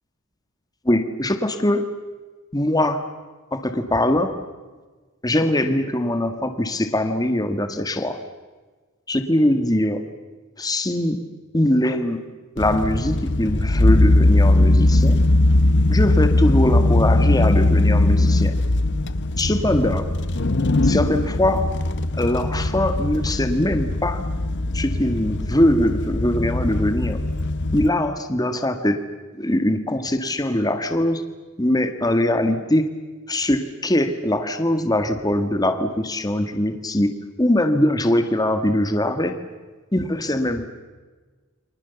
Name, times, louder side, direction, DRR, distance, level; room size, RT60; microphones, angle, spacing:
voice 1, 0.8-1.8 2.5-3.0 3.5-4.4 5.2-8.2 9.1-10.0 10.6-11.2 11.5-12.3 12.6-15.2 15.9-18.5 19.4-20.1 20.8-21.8 22.1-24.2 24.7-27.2 27.7-29.0 29.3-31.2 31.6-32.9 33.3-37.1 37.4-39.4 39.9-40.7, left 1 dB, 20° left, 7 dB, 1.8 m, -22 dB
sound 1, 12.6-27.9, left 2 dB, 55° left, 1.1 m, -20 dB
29.5 x 25.0 x 7.1 m, 1.3 s
head